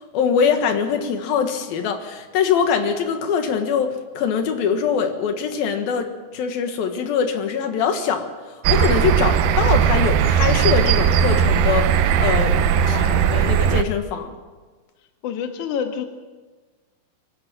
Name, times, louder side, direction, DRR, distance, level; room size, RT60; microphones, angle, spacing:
voice 1, 0.0-8.3 8.7-12.6 12.9-13.1 13.3-14.4, left 6 dB, 85° left, 6 dB, 3.4 m, -23 dB
sound 1, 8.6-13.8, right 8 dB, 75° right, 2.4 m, -18 dB
voice 2, 12.8-13.5 15.2-16.1, left 7 dB, 60° left, 5 dB, 3.0 m, -29 dB
24.5 x 13.5 x 8.9 m, 1.3 s
omnidirectional pair, 4.1 m